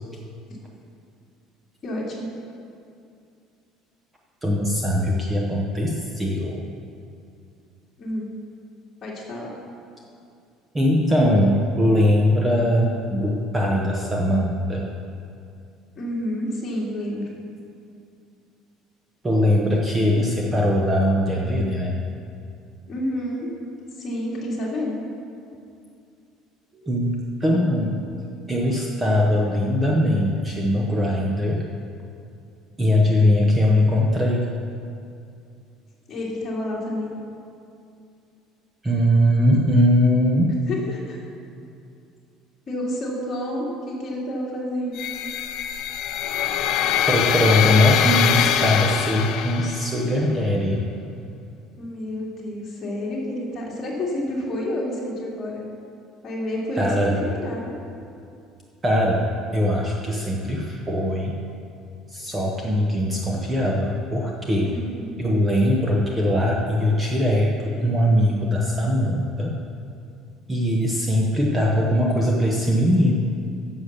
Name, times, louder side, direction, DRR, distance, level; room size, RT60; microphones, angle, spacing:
voice 1, 1.8-2.3 8.0-8.3 9.0-9.5 15.9-17.3 22.9-23.5 23.9-25.0 36.1-37.1 40.7-41.2 42.7-45.0 51.8-55.6 56.2-57.7 64.7-65.2, left 1 dB, 25° left, -4 dB, 2.4 m, -29 dB
voice 2, 4.4-6.6 10.7-14.9 19.2-22.0 26.7-28.0 28.5-31.6 32.8-34.5 38.8-40.6 47.1-50.8 56.8-57.2 58.8-61.4 62.1-64.8 65.2-69.6 70.5-73.1, left 1 dB, 10° right, -1 dB, 0.8 m, -21 dB
sound 1, 45.0-50.0, left 9 dB, 50° left, 0.5 m, -23 dB
10.0 x 7.1 x 6.6 m, 2.5 s
cardioid pair, 165°, 0 cm